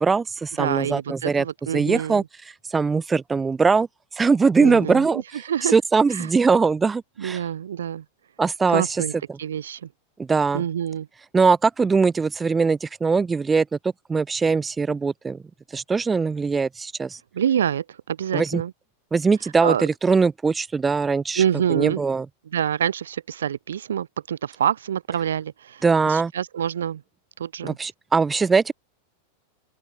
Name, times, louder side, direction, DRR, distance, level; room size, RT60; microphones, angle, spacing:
voice 1, 0.0-1.4 1.7-2.2 2.7-3.9 4.2-5.2 5.7-7.4 8.4-8.8 10.2-10.6 11.3-13.7 14.1-15.4 15.7-17.2 18.3-18.6 19.1-21.4 21.7-22.3 25.8-26.3 27.6-28.7, right 4 dB, 15° right, 0.8 m, -21 dB
voice 2, 0.6-2.3 4.6-5.7 6.1-6.3 7.2-8.0 8.7-9.1 9.4-9.9 10.5-11.1 17.3-18.7 19.6-19.9 21.4-22.0 22.5-27.0 27.4-27.8, right 9 dB, 65° right, 2.9 m, -26 dB
open air
figure-of-eight pair, 90°, 0 cm